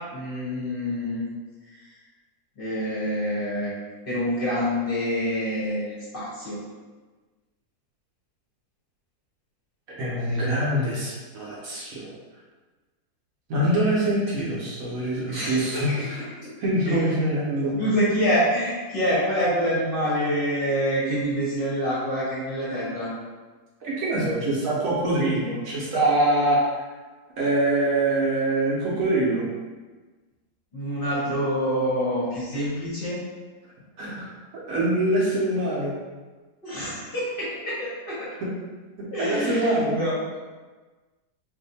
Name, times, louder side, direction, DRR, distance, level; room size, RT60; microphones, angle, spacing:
voice 1, 0.1-1.3 2.6-3.7 4.1-6.6 15.3-15.6 16.4-16.5 16.9-17.0 17.7-23.1 30.7-33.2 36.6-38.3 39.1-40.2, equal, 40° left, -9 dB, 0.9 m, -26 dB
voice 2, 9.9-12.1 13.5-16.2 16.6-17.7 23.8-26.6 27.4-29.5 34.0-34.3 34.7-35.9 38.4-38.5 39.0-40.0, right 1 dB, 65° right, -5 dB, 1.1 m, -24 dB
2.7 x 2.5 x 4.0 m, 1.3 s
omnidirectional pair, 1.7 m